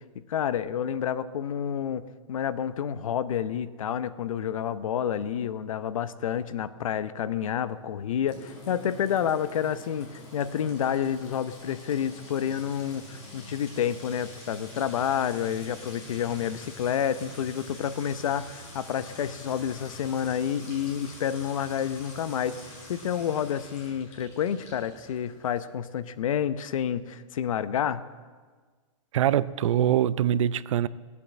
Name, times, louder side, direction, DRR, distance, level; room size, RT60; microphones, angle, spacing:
voice 1, 0.3-22.6 22.9-28.0, left 9 dB, 75° left, 0.8 m, -29 dB
Sink (filling or washing) / Trickle dribble / Fill (with liquid), 8.3-25.7, left 2 dB, 50° left, 5.6 m, -46 dB
voice 2, 29.1-30.9, right 10 dB, 65° right, 0.6 m, -23 dB
17.5 x 8.4 x 7.6 m
hypercardioid pair, 145°, 17 cm